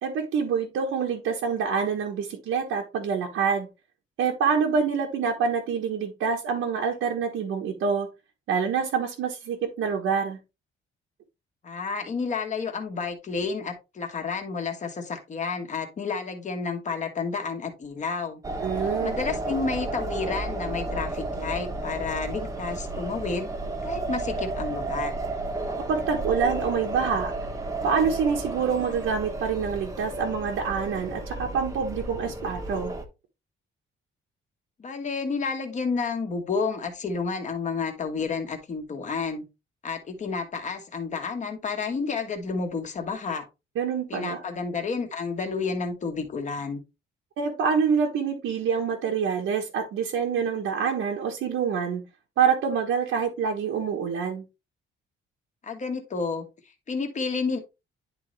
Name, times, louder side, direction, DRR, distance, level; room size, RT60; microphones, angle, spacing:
voice 1, 0.0-3.7 4.2-8.1 8.5-10.4 18.6-19.2 25.9-27.3 27.8-32.9 43.8-44.4 47.4-52.0 52.4-54.4, right 6 dB, 85° right, 1.3 m, -26 dB
voice 2, 11.6-18.4 19.0-23.5 23.8-25.2 34.8-39.4 39.8-43.4 44.1-46.8 55.6-56.5 56.9-57.6, left 4 dB, 35° left, 1.4 m, -30 dB
sound 1, 18.4-33.0, right 2 dB, 15° right, 1.0 m, -32 dB
10.5 x 3.9 x 3.2 m
cardioid pair, 175°, 21 cm